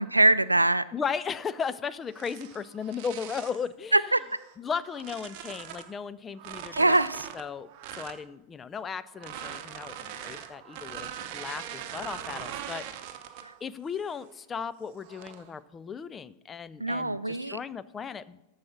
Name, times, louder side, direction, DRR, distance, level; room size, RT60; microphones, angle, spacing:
voice 1, 0.0-0.8 3.9-4.2 6.7-7.3 16.8-17.6, right 2 dB, 85° right, 16 dB, 0.4 m, -23 dB
voice 2, 0.9-4.1 4.6-7.0 7.3-12.8 13.6-18.4, left 6 dB, 20° left, 16 dB, 0.4 m, -36 dB
sound 1, 2.1-3.7 4.3-5.9 6.4-8.2 9.1-13.6 14.0-14.3 15.0-15.5, right 10 dB, 45° right, 0.9 m, -41 dB
14.0 x 4.8 x 5.8 m, 0.99 s
figure-of-eight pair, 90°, 0 cm